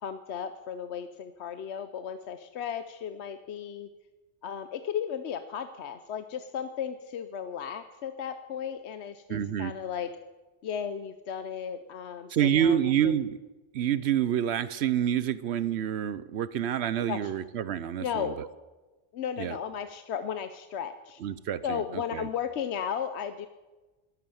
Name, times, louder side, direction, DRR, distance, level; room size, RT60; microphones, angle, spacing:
voice 1, 0.0-3.9 4.4-10.1 10.6-13.2 17.1-17.3 18.0-18.3 19.1-21.2 21.6-23.5, left 8 dB, 75° left, 10 dB, 1.0 m, -35 dB
voice 2, 9.3-9.7 12.3-13.4 13.7-18.5 19.4-19.6 21.2-22.3, right 10 dB, 75° right, 16 dB, 0.9 m, -28 dB
13.0 x 12.0 x 7.0 m, 1.2 s
omnidirectional pair, 1.1 m